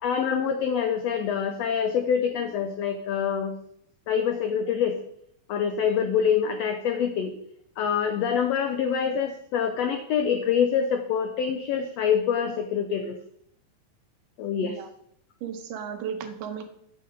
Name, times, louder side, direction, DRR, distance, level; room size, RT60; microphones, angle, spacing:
voice 1, 0.0-3.6 4.1-5.0 5.5-7.3 7.8-13.2 14.4-14.8, left 7 dB, 85° left, 7 dB, 1.4 m, -25 dB
voice 2, 15.4-16.6, right 7 dB, 85° right, 7 dB, 2.6 m, -35 dB
7.6 x 6.8 x 5.1 m, 0.70 s
omnidirectional pair, 3.8 m